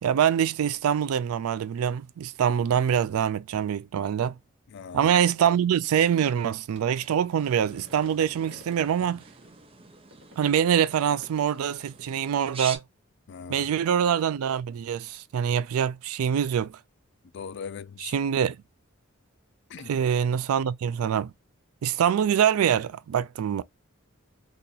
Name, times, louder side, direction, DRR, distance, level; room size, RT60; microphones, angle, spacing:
voice 1, 0.0-4.3 4.9-9.2 10.4-12.8 13.5-16.7 18.0-18.6 19.9-21.3 21.8-23.6, right 8 dB, 90° right, 0.3 m, -24 dB
voice 2, 4.7-5.1 13.3-13.7 17.3-18.1 19.7-20.0, left 6 dB, 55° left, 0.3 m, -40 dB
sound 1, 6.1-9.5 10.1-11.4, equal, 60° right, 1.0 m, -51 dB
sound 2, 7.4-12.8, right 5 dB, 25° right, 0.5 m, -43 dB
2.8 x 2.5 x 3.9 m
head